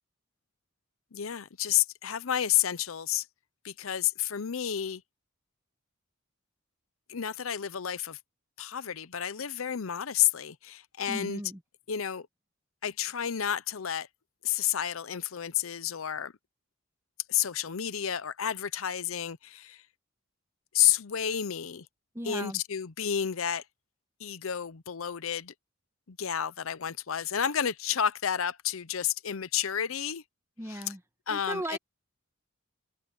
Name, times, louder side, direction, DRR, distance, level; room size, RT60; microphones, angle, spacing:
voice 1, 1.1-3.3 3.6-5.0 7.1-8.2 8.6-11.4 11.9-12.3 12.8-14.1 14.4-16.3 17.3-19.8 20.7-21.8 22.2-23.6 24.2-25.5 26.1-30.2 30.7-30.8 31.3-31.8, left 10 dB, 85° left, 0.7 m, -30 dB
voice 2, 11.1-11.6 22.1-22.6 30.6-31.0 31.3-31.8, right 1 dB, 15° right, 1.4 m, -36 dB
head